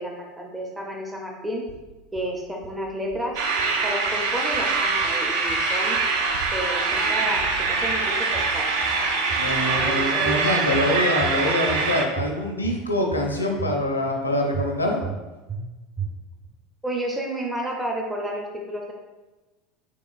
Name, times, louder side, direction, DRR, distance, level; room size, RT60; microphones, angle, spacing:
voice 1, 0.0-1.6 2.1-3.4 3.8-6.0 6.5-8.7 9.8-10.5 16.8-18.9, right 1 dB, 10° right, 0 dB, 0.6 m, -31 dB
sound 1, 1.7-2.3 2.6-3.3 3.6-4.3 4.5-5.2 5.5-6.2 6.4-7.1 7.4-8.1 8.3-9.0 9.3-10.0 10.2-10.9 11.2-11.9 12.2-12.8 13.1-13.8 14.0-14.2 14.5-15.2 15.5-15.6 16.0-16.5, right 5 dB, 35° right, 0.8 m, -36 dB
sound 2, 3.4-12.0, right 4 dB, 60° right, 0.4 m, -24 dB
voice 2, 9.3-15.0, left 1 dB, 85° left, 1 dB, 0.5 m, -24 dB
3.7 x 3.6 x 2.5 m, 1.2 s
figure-of-eight pair, 75°, 0 cm